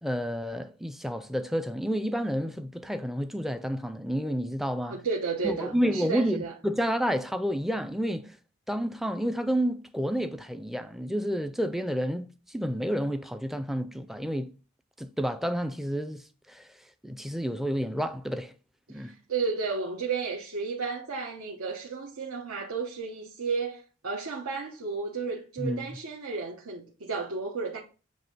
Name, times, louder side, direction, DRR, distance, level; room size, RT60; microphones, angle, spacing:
voice 1, 0.0-5.0 5.4-8.4 8.7-14.5 15.0-16.7 17.0-18.5 18.9-19.1 25.6-25.9, equal, ahead, 0.3 m, -30 dB
voice 2, 4.8-6.5 18.9-27.8, right 4 dB, 90° right, 1.1 m, -33 dB
8.2 x 2.8 x 5.2 m
head